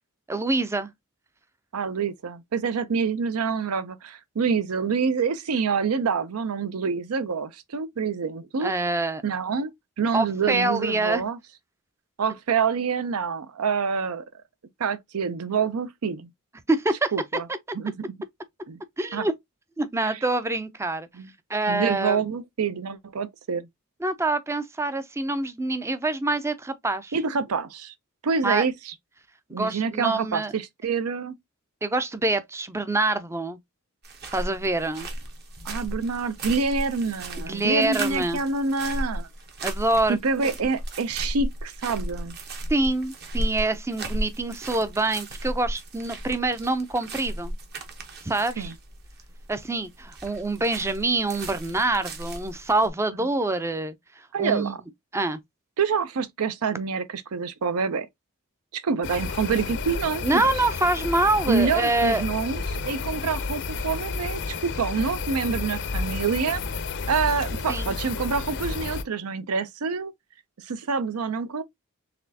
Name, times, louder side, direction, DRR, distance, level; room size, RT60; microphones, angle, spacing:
voice 1, 0.3-0.9 8.6-9.2 10.1-11.2 16.7-17.1 19.0-19.3 19.8-21.1 21.5-22.2 24.0-27.2 28.4-28.7 29.5-30.5 31.8-33.6 34.3-35.1 37.4-38.4 39.6-40.5 42.7-47.5 48.2-48.7 49.5-54.8 55.1-55.4 60.2-62.2 67.7-67.9, right 2 dB, 10° right, 0.4 m, -26 dB
voice 2, 1.7-8.7 9.2-9.7 10.0-11.4 12.2-14.2 14.8-16.3 17.1-17.5 17.7-18.1 18.7-18.8 19.1-19.3 21.1-21.3 21.7-23.7 27.1-27.9 28.2-28.9 29.5-31.3 35.6-39.3 40.1-42.4 48.6-48.7 54.3-54.8 55.8-58.1 58.7-60.5 61.5-66.6 67.1-70.1 70.6-71.6, right 5 dB, 75° right, 0.5 m, -27 dB
sound 1, 34.0-52.9, right 1 dB, 45° right, 1.0 m, -35 dB
sound 2, 59.0-69.0, left 4 dB, 55° left, 0.5 m, -31 dB
4.2 x 3.2 x 2.7 m
head